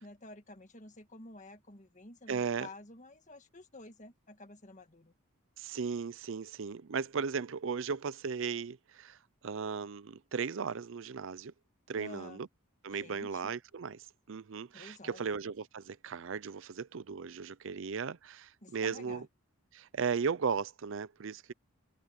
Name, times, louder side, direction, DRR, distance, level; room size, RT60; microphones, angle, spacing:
voice 1, 0.0-5.1 12.0-12.4 12.9-13.5 14.7-15.3 18.6-19.3, left 2 dB, 35° left, 1.7 m, -51 dB
voice 2, 2.3-2.7 5.6-9.2 9.4-11.5 11.9-12.5 12.8-19.2 19.7-21.5, right 5 dB, 60° right, 0.5 m, -36 dB
head